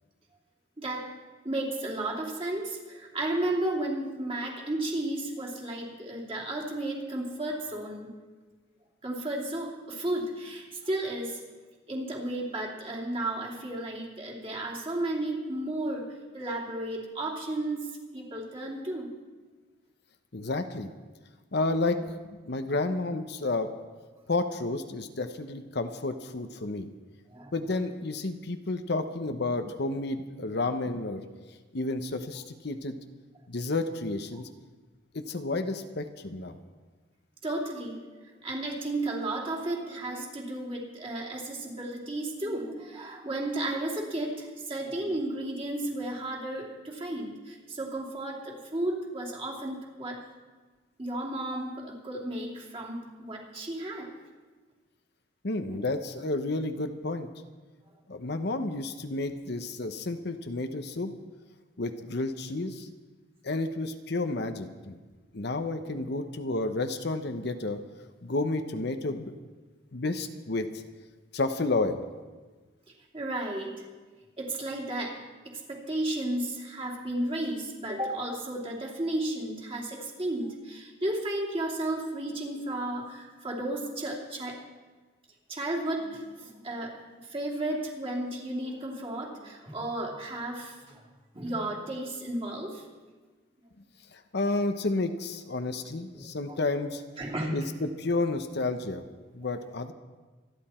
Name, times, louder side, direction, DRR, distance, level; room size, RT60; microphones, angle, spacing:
voice 1, 0.8-1.1 1.4-8.1 9.0-11.4 11.9-19.1 27.3-27.5 37.4-38.0 38.4-50.2 51.0-54.1 55.7-55.8 73.1-73.8 74.4-75.2 75.4-84.6 85.5-87.0 87.3-91.0 91.3-92.8 96.1-96.6 97.2-97.6, right 1 dB, 30° right, -2 dB, 3.0 m, -33 dB
voice 2, 20.3-20.9 21.5-23.7 24.3-26.9 27.5-31.2 31.7-33.0 33.5-34.5 35.1-36.6 55.4-57.3 58.1-61.1 61.8-62.9 63.4-65.0 65.3-67.8 68.2-69.3 69.9-70.7 71.3-72.0 94.1-97.0 97.5-99.0 99.3-99.9, left 2 dB, 60° left, 8 dB, 0.9 m, -31 dB
26.5 x 11.0 x 4.4 m, 1.3 s
head